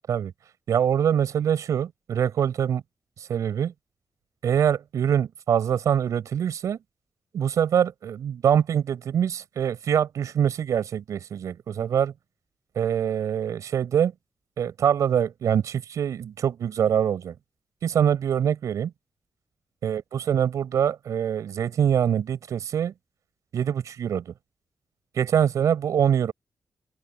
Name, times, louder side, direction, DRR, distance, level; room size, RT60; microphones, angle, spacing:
voice 1, 0.7-2.8 3.3-3.7 4.4-6.8 7.3-12.1 12.8-14.1 14.6-17.3 17.8-18.9 19.8-22.9 23.5-24.3 25.2-26.3, right 8 dB, 85° right, 5.6 m, -24 dB
open air
cardioid pair, 90°, 5 cm